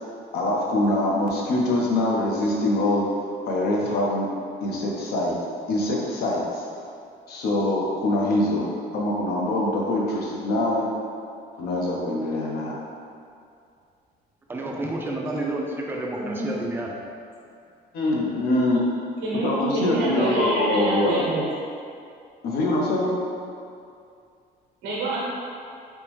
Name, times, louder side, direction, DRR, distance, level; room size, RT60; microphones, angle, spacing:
voice 1, 0.3-3.1 3.5-4.3 4.6-5.4 5.7-6.6 7.3-8.6 8.9-10.9 11.6-12.8 17.9-18.8 19.4-21.3 22.4-23.2, left 1 dB, 70° left, -3 dB, 0.7 m, -24 dB
voice 2, 14.5-16.9, right 2 dB, 15° right, -1 dB, 0.4 m, -30 dB
voice 3, 16.2-16.5 19.2-21.4 24.8-25.2, right 2 dB, 85° right, -6 dB, 1.0 m, -26 dB
3.4 x 2.0 x 3.0 m, 2.4 s
cardioid pair, 110°, 17 cm